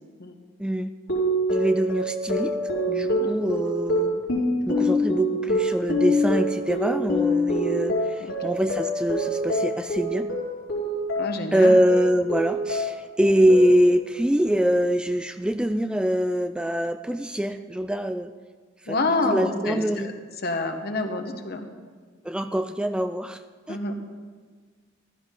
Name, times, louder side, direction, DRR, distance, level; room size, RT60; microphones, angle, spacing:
sound 1, 1.1-11.5 11.9-13.1 13.5-14.0, equal, 75° left, 4.2 m, -26 dB
voice 1, 1.5-2.5 2.9-4.2 4.7-10.3 11.5-18.3 18.8-19.0 19.3-20.1 22.2-23.4 23.7-23.8, equal, 5° right, 9 dB, 0.3 m, -24 dB
voice 2, 11.2-11.8 18.9-20.1 20.4-21.7 23.7-24.0, left 2 dB, 55° left, 6 dB, 1.2 m, -28 dB
15.0 x 12.0 x 3.8 m, 1.5 s
head